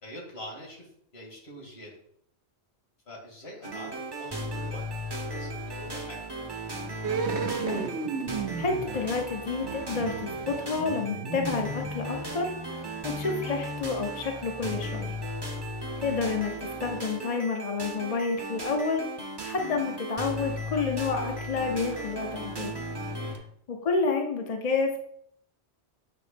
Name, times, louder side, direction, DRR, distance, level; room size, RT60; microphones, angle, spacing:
voice 1, 0.0-2.0 3.1-6.3 23.1-23.3, left 1 dB, 65° left, -1 dB, 2.1 m, -45 dB
sound 1, 3.6-23.4, right 1 dB, 25° right, 0.8 m, -36 dB
sound 2, 7.0-12.5 12.7-12.8, right 5 dB, 75° right, 1.0 m, -34 dB
voice 2, 8.3-15.2 16.0-19.1 19.4-22.7 23.3-23.4 23.7-25.0, left 4 dB, 40° left, 3 dB, 0.7 m, -30 dB
7.7 x 3.1 x 5.1 m, 0.68 s
omnidirectional pair, 1.1 m